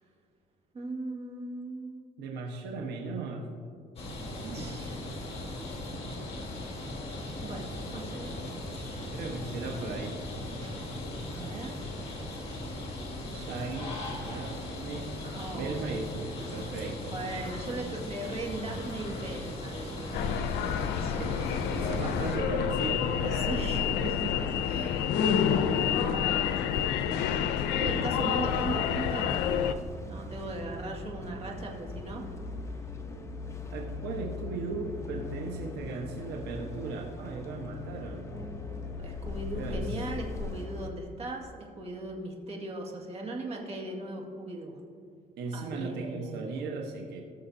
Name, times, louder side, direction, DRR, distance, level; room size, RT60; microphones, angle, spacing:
voice 1, 0.7-2.0 4.5-5.2 7.4-8.4 8.7-9.2 10.6-10.7 11.3-11.8 15.2-15.8 17.0-20.4 20.6-21.2 23.2-25.1 25.5-26.8 27.5-29.4 30.1-32.2 38.3-44.8 45.5-46.5, right 2 dB, 35° right, -1 dB, 2.0 m, -39 dB
voice 2, 2.2-3.5 4.4-4.8 9.1-10.2 13.3-13.9 14.2-15.1 15.5-17.1 21.2-21.3 21.7-23.5 23.7-23.8 27.6-28.1 33.7-38.3 39.5-40.1 45.4-47.2, right 3 dB, 80° right, 1 dB, 1.2 m, -37 dB
sound 1, 4.0-22.4, left 1 dB, 35° left, 2.3 m, -38 dB
sound 2, 20.1-29.7, left 8 dB, 85° left, 0.6 m, -28 dB
sound 3, 27.8-40.9, left 3 dB, 15° left, 0.9 m, -40 dB
19.5 x 6.7 x 2.7 m, 2.4 s
cardioid pair, 110°, 17 cm